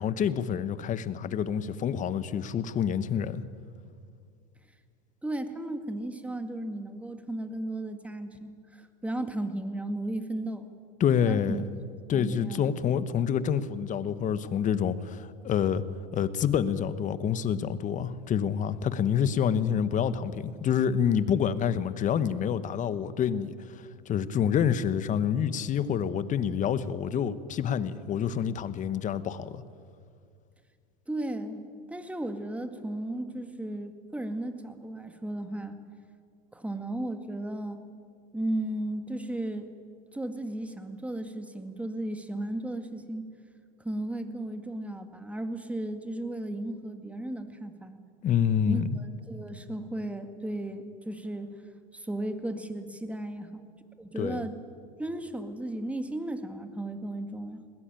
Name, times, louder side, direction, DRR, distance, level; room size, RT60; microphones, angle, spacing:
voice 1, 0.0-3.4 11.0-11.7 12.1-15.8 16.1-29.6 48.2-49.0 54.1-54.4, left 8 dB, 40° left, 14 dB, 1.3 m, -27 dB
voice 2, 5.2-10.7 11.3-11.6 12.1-12.9 31.1-31.6 31.9-35.8 36.5-37.8 38.3-39.7 40.1-43.3 43.8-48.0 48.7-51.5 51.9-53.6 54.0-54.6 55.0-57.6, right 1 dB, 5° right, 8 dB, 2.0 m, -35 dB
20.5 x 18.5 x 9.1 m, 2.2 s
supercardioid pair, 100°, 20 cm